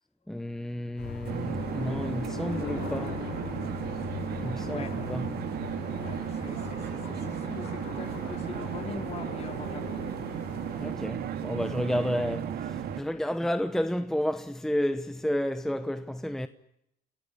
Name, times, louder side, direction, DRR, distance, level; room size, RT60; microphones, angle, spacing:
voice 1, 0.3-3.3 4.4-5.3 10.8-16.5, equal, 5° left, 0.9 m, -31 dB
sound 1, 1.0-10.9, left 6 dB, 90° left, 8.0 m, -40 dB
sound 2, 1.3-13.0, right 9 dB, 70° right, 2.1 m, -35 dB
voice 2, 4.7-5.0 6.0-10.2 13.2-13.3, left 5 dB, 40° left, 2.9 m, -43 dB
sound 3, 8.0-13.2, right 2 dB, 15° right, 4.8 m, -50 dB
28.5 x 15.5 x 9.9 m
cardioid pair, 110°, 17 cm